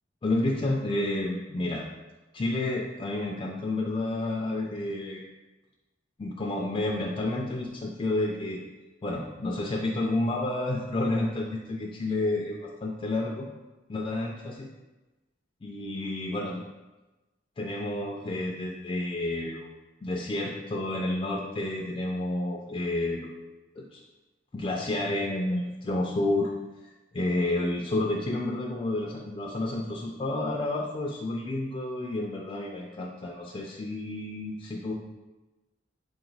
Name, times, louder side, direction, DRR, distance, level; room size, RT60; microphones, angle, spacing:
voice 1, 0.2-1.9 2.3-5.2 6.2-8.6 9.0-13.5 13.9-14.7 15.6-16.6 17.6-19.7 20.0-23.3 23.8-24.0 24.5-26.5 27.1-34.9, left 2 dB, 25° left, -1 dB, 0.3 m, -30 dB
3.7 x 2.9 x 3.9 m, 1.1 s
head